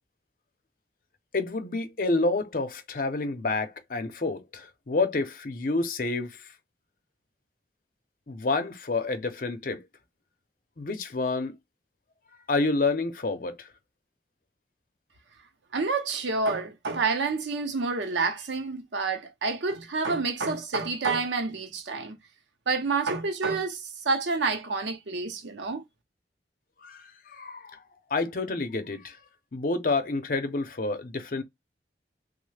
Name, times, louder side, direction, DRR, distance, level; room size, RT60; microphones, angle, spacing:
voice 1, 1.3-6.5 8.3-9.9 10.8-11.6 12.5-13.7 26.8-27.8 28.1-29.2 29.5-31.4, left 3 dB, 50° left, 0.6 m, -29 dB
voice 2, 15.7-22.2 22.7-25.8, right 4 dB, 85° right, 0.7 m, -28 dB
3.1 x 2.0 x 3.2 m
head